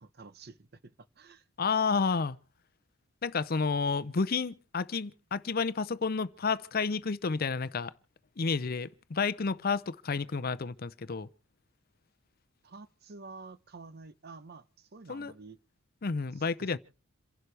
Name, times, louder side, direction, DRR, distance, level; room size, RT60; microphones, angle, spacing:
voice 1, 0.0-1.5 12.6-15.6 16.3-16.8, right 3 dB, 50° right, 0.7 m, -50 dB
voice 2, 1.6-2.4 3.2-7.9 8.4-11.3 15.1-15.3 16.0-16.8, left 4 dB, 45° left, 0.6 m, -30 dB
28.0 x 11.5 x 3.3 m
head